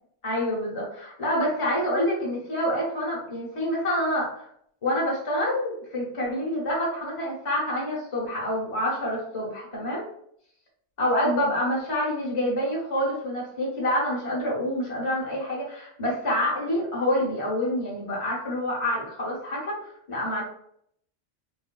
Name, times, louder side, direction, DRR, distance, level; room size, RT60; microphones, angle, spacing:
voice 1, 0.2-4.4 4.8-10.0 11.0-20.4, equal, 30° left, -4 dB, 0.9 m, -27 dB
3.3 x 2.5 x 2.2 m, 0.68 s
omnidirectional pair, 1.2 m